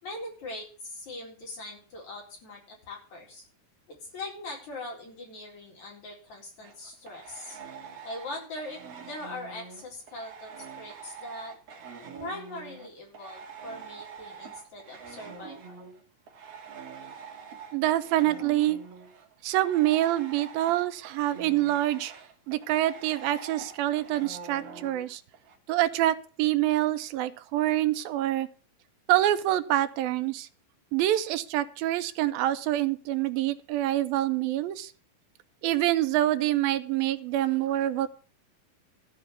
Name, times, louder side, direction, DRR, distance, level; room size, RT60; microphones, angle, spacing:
voice 1, 0.0-3.4 4.0-7.6 8.0-11.5 12.2-15.9, left 2 dB, 55° left, -1 dB, 5.6 m, -41 dB
sound 1, 6.6-12.9 13.1-25.6, right 6 dB, 50° right, 2.5 m, -45 dB
voice 2, 17.7-18.8 19.4-22.1 22.5-25.2 25.7-28.5 29.1-30.5 30.9-34.9 35.6-38.1, right 14 dB, 85° right, 11 dB, 2.6 m, -26 dB
13.5 x 5.2 x 9.4 m, 0.39 s
omnidirectional pair, 4.1 m